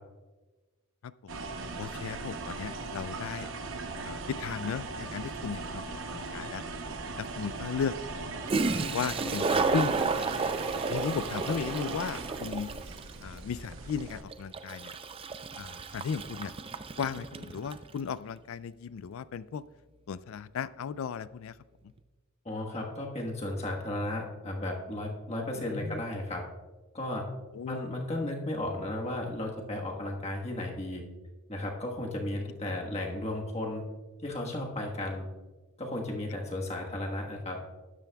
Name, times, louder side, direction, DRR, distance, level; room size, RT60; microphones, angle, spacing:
voice 1, 1.0-1.4 1.8-3.5 4.0-6.7 7.2-7.9 8.9-10.4 10.9-12.7 13.2-15.0 15.6-16.5 17.0-19.6 20.1-21.6 25.6-26.0 27.5-27.8 28.2-28.3 32.7-32.8, left 6 dB, 65° left, 17 dB, 0.3 m, -36 dB
sound 1, 1.3-14.2, right 3 dB, 60° right, 0.9 m, -39 dB
Toilet flush, 6.5-6.6 8.2-8.3 8.5-17.9, right 4 dB, 25° right, 0.4 m, -32 dB
voice 2, 22.4-26.4 26.9-27.3 27.7-31.0 31.5-33.8 34.2-35.3 35.8-37.6, left 1 dB, 30° left, 0 dB, 1.3 m, -34 dB
13.0 x 10.5 x 2.3 m, 1.2 s
head